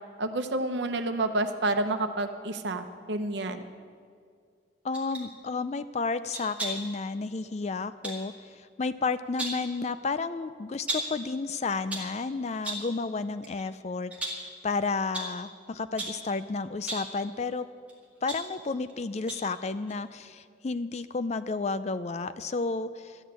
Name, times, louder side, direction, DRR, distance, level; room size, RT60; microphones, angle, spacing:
voice 1, 0.2-3.6, right 2 dB, 65° right, 7 dB, 0.9 m, -29 dB
voice 2, 4.8-17.7 18.2-23.2, left 4 dB, 35° left, 13 dB, 0.4 m, -32 dB
sound 1, 4.9-5.3 6.3-6.9 8.0-8.2 9.1-9.7 10.9-11.2 11.7-12.2 12.6-13.0 13.4-13.6 14.1-14.5 15.1-15.4 16.0-16.3 16.8-17.2 17.9-18.9 19.3-19.6 19.9-20.0, right 1 dB, 5° right, 2.1 m, -35 dB
12.5 x 8.2 x 8.7 m, 2.2 s
head